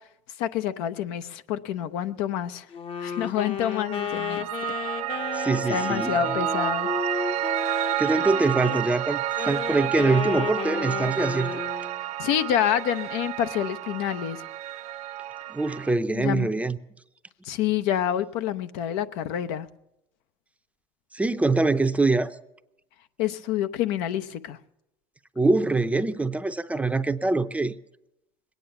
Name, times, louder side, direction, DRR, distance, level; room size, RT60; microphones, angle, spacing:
voice 1, 0.4-2.7 3.0-4.4 5.7-6.9 12.2-14.4 16.1-16.5 17.4-19.7 23.2-24.6, left 10 dB, 80° left, 0.8 m, -27 dB
Wind instrument woodwind instrument, 2.7-8.9 9.4-12.0, left 7 dB, 40° left, 0.8 m, -33 dB
Piano, 3.6-15.9, right 13 dB, 60° right, 0.5 m, -30 dB
voice 2, 5.3-6.2 8.0-11.6 15.5-16.8 21.1-22.3 25.4-27.7, right 3 dB, 10° right, 0.6 m, -24 dB
20.5 x 9.3 x 6.9 m
supercardioid pair, 110°, 14 cm